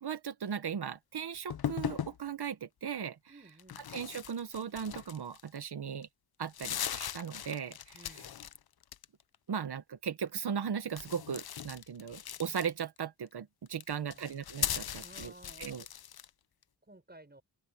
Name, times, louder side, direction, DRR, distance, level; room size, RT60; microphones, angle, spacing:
voice 1, 0.0-3.2 3.9-6.1 6.4-8.2 9.5-15.3 15.6-15.8, right 7 dB, 75° right, 1.4 m, -37 dB
sound 1, 1.5-2.2 3.6-5.6 6.0-6.1 6.4-8.6 8.8-9.3 10.9-13.0 13.7-16.3, left 9 dB, 65° left, 0.8 m, -39 dB
voice 2, 3.3-3.9 7.9-8.4 13.9-14.4 15.0-15.8 16.9-17.4, right 2 dB, 25° right, 6.9 m, -55 dB
open air
cardioid pair, 60°, 40 cm